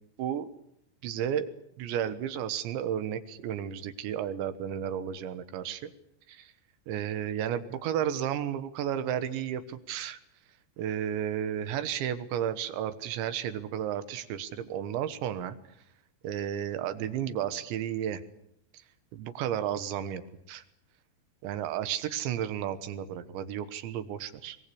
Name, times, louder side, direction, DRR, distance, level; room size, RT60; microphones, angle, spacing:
voice 1, 0.2-0.5 1.0-1.5 1.8-5.9 6.3-6.5 6.9-10.2 10.8-15.6 16.2-18.2 19.1-20.2 20.5-20.6 21.4-24.6, right 10 dB, 75° right, 12 dB, 3.4 m, -32 dB
22.5 x 21.5 x 8.5 m, 0.75 s
omnidirectional pair, 5.5 m